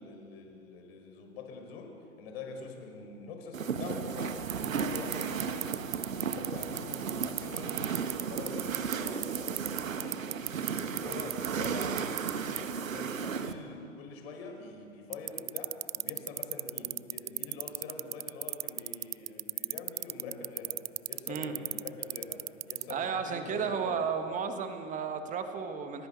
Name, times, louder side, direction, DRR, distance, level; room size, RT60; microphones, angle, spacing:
voice 1, 0.0-4.5 4.8-5.7 6.1-10.2 10.6-12.1 12.4-20.8 21.1-24.0, left 4 dB, 50° left, 4 dB, 4.8 m, -45 dB
sound 1, 3.5-13.5, right 6 dB, 80° right, 1.4 m, -34 dB
sound 2, 4.5-12.3 12.6-12.7 15.1-22.9, right 15 dB, 50° right, 0.4 m, -32 dB
voice 2, 22.9-26.1, right 6 dB, 20° right, 7 dB, 1.7 m, -33 dB
30.0 x 11.0 x 8.0 m, 2.6 s
hypercardioid pair, 125°, 40 cm